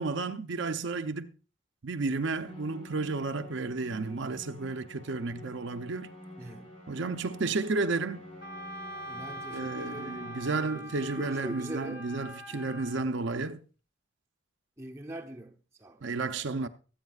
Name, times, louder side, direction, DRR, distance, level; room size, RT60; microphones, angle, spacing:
voice 1, 0.0-1.3 1.8-6.1 6.9-8.2 9.5-13.6 16.0-16.7, right 3 dB, 65° right, 0.6 m, -32 dB
Musical instrument, 2.4-10.9, left 1 dB, 30° left, 4.8 m, -49 dB
voice 2, 6.4-6.7 9.1-10.3 10.6-12.1 12.5-12.7 14.8-16.0, right 1 dB, 15° right, 0.8 m, -43 dB
Wind instrument woodwind instrument, 8.4-13.0, right 1 dB, 50° left, 1.1 m, -43 dB
22.5 x 8.6 x 2.4 m
head